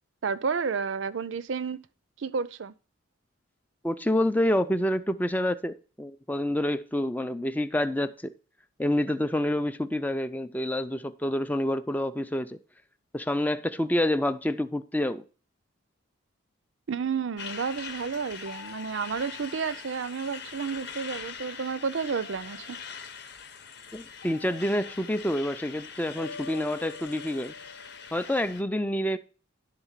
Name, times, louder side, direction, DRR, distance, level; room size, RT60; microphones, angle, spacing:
voice 1, 0.2-1.8 2.2-2.7 16.9-22.8, right 5 dB, 65° right, 0.5 m, -31 dB
voice 2, 3.8-8.3 8.8-12.6 13.1-15.2 23.9-27.5 28.1-29.2, left 1 dB, 10° left, 0.4 m, -28 dB
Truck, 17.4-28.6, left 6 dB, 55° left, 0.9 m, -43 dB
sound 1, 18.4-20.8 22.2-23.2 24.2-25.5 26.2-28.5, left 5 dB, 85° left, 0.9 m, -48 dB
11.0 x 3.9 x 7.3 m
head